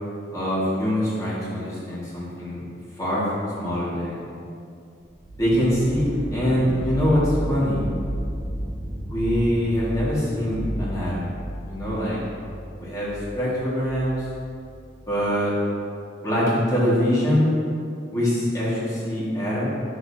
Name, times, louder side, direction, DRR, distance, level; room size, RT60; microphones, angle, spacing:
voice 1, 0.3-2.6 3.0-4.2 5.4-7.8 9.0-11.3 11.7-12.2 12.8-14.3 15.1-15.5 16.2-17.5 18.1-19.7, equal, 20° left, -8 dB, 1.7 m, -24 dB
sound 1, 5.2-15.0, equal, 10° right, 1.4 m, -33 dB
10.5 x 6.6 x 2.8 m, 2.5 s
head